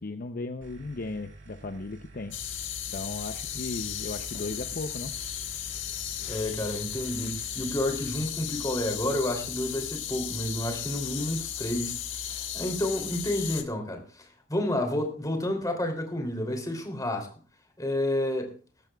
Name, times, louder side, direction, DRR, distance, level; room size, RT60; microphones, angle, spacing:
voice 1, 0.0-2.4 2.9-5.1, left 3 dB, 50° left, 0.7 m, -36 dB
sound 1, 0.6-8.2, right 2 dB, 65° right, 2.7 m, -50 dB
sound 2, 2.3-13.6, left 9 dB, 75° left, 1.6 m, -35 dB
voice 2, 6.3-12.0 12.5-14.0 14.5-17.3 17.8-18.5, left 1 dB, 20° left, 3.1 m, -30 dB
19.0 x 14.0 x 2.4 m
head